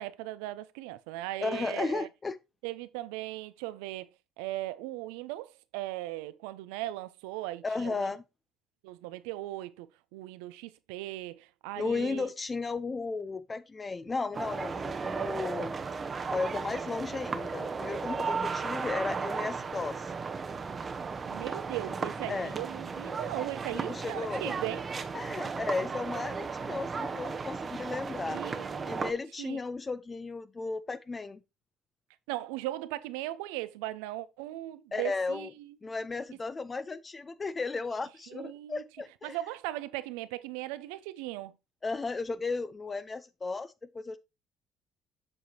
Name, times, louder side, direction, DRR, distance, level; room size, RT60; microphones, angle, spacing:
voice 1, 0.0-2.1 2.6-4.1 4.4-8.1 8.8-12.3 21.3-24.8 28.3-29.6 32.3-35.8 38.3-38.8 39.2-41.5, right 16 dB, 80° right, 0.5 m, -38 dB
voice 2, 1.4-2.4 7.6-8.2 11.8-15.8 16.3-20.1 22.3-22.6 23.7-24.6 25.1-28.4 28.9-31.4 34.9-35.5 35.8-39.4 41.8-44.2, left 3 dB, 30° left, 0.5 m, -34 dB
sound 1, 14.3-29.1, right 5 dB, 35° right, 0.8 m, -35 dB
7.6 x 6.2 x 2.8 m
hypercardioid pair, 60°, 0 cm